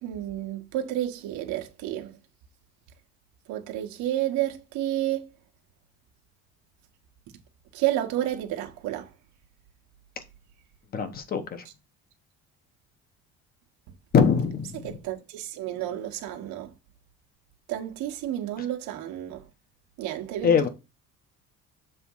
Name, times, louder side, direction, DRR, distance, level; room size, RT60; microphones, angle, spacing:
voice 1, 0.0-2.2 3.5-5.3 7.7-9.1 14.8-16.7 17.7-19.5 20.0-20.7, right 13 dB, 85° right, 1.3 m, -30 dB
voice 2, 10.9-11.6 14.1-14.9 20.4-20.7, left 6 dB, 30° left, 1.0 m, -22 dB
6.9 x 3.6 x 5.5 m
cardioid pair, 165°, 29 cm